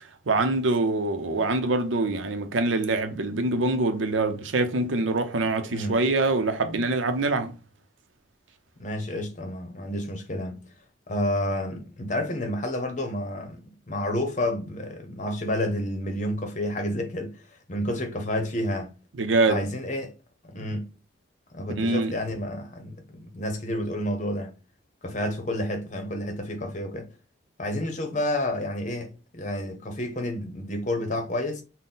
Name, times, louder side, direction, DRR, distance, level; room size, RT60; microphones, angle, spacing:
voice 1, 0.3-7.5 19.2-19.6 20.6-20.7 21.8-22.1, right 2 dB, 90° right, 0.6 m, -24 dB
voice 2, 8.8-10.6 11.1-19.0 19.5-20.1 20.4-20.9 21.5-24.5 25.0-27.1 27.6-31.6, left 1 dB, 40° left, 0.7 m, -30 dB
3.9 x 2.1 x 3.9 m
head